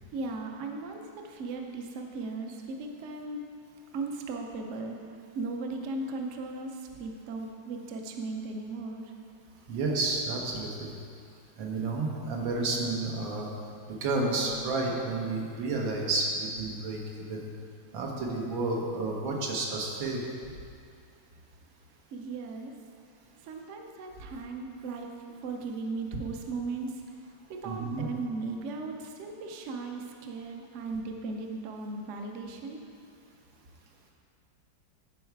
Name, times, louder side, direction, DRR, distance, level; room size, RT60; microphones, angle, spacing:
voice 1, 0.1-3.4 3.9-5.0 5.3-6.7 7.0-9.0 22.1-22.7 23.5-25.1 25.4-26.9 27.5-32.8, right 3 dB, 60° right, 2 dB, 0.7 m, -37 dB
voice 2, 9.7-10.9 11.6-13.5 13.9-17.0 17.3-17.5 17.9-20.2 27.6-28.1, right 3 dB, 85° right, -1 dB, 1.9 m, -31 dB
10.5 x 4.7 x 4.6 m, 2.4 s
omnidirectional pair, 2.1 m